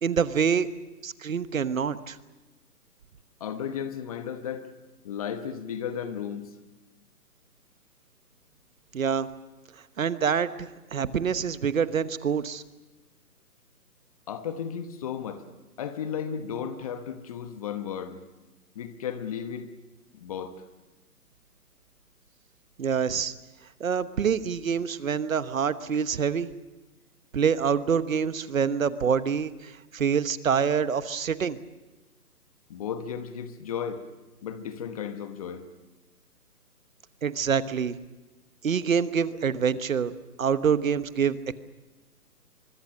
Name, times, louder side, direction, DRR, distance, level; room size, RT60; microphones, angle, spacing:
voice 1, 0.0-0.7 1.0-2.2 8.9-9.3 10.0-12.6 22.8-23.3 23.8-26.5 27.3-31.6 37.2-38.0 38.6-40.1 40.4-41.6, right 7 dB, 55° right, 14 dB, 1.2 m, -26 dB
voice 2, 3.4-4.7 5.0-6.6 14.3-15.4 15.8-18.2 18.7-19.7 20.1-20.6 32.7-34.0 34.4-35.6, left 8 dB, 25° left, 10 dB, 1.1 m, -34 dB
24.5 x 23.5 x 6.5 m, 1.1 s
figure-of-eight pair, 150°, 47 cm